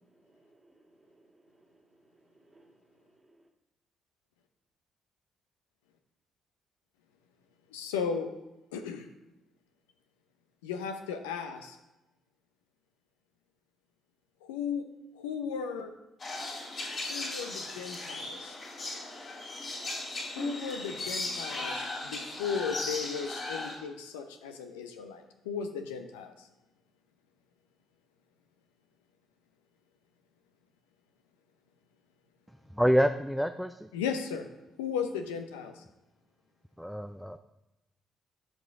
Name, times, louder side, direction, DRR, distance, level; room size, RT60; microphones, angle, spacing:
voice 1, 0.3-1.8 2.3-2.8 3.2-3.4, right 2 dB, 25° right, 2 dB, 1.7 m, -63 dB
voice 2, 7.7-8.3 8.7-9.1 10.6-11.8 14.4-14.8 15.1-15.9 17.1-18.6 20.3-26.5 33.9-34.5 34.8-35.8, left 6 dB, 80° left, 6 dB, 0.6 m, -36 dB
sound 1, 16.2-23.8, left 2 dB, 45° left, 2.7 m, -37 dB
voice 3, 32.7-33.9 36.8-37.4, equal, ahead, 8 dB, 0.4 m, -27 dB
12.5 x 5.0 x 3.6 m, 0.97 s
figure-of-eight pair, 45°, 0 cm